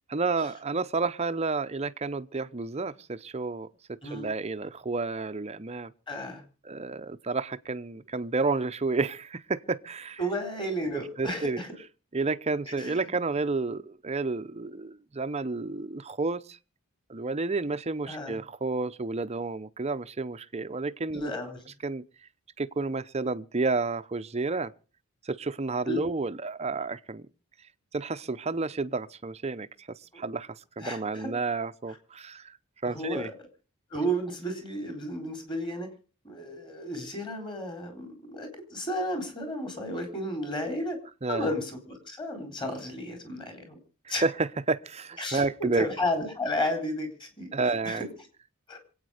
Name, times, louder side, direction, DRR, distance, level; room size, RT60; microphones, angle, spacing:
voice 1, 0.1-3.7 4.1-5.9 6.6-10.2 10.9-11.6 12.1-16.6 17.1-21.3 21.8-22.0 22.6-24.7 25.2-27.2 27.9-29.7 30.2-30.5 30.8-32.6 32.8-33.3 41.2-41.5 44.1-45.9 47.5-48.0, right 3 dB, 30° right, 0.7 m, -30 dB
voice 2, 6.1-6.4 10.2-11.7 12.7-12.9 18.1-18.4 21.1-21.6 25.8-26.0 30.1-30.2 30.8-31.3 32.8-33.3 33.9-35.9 36.2-41.0 41.3-43.8 44.1-44.2 45.2-48.1 48.7-48.8, equal, 20° left, 4.1 m, -33 dB
26.0 x 8.8 x 5.0 m
head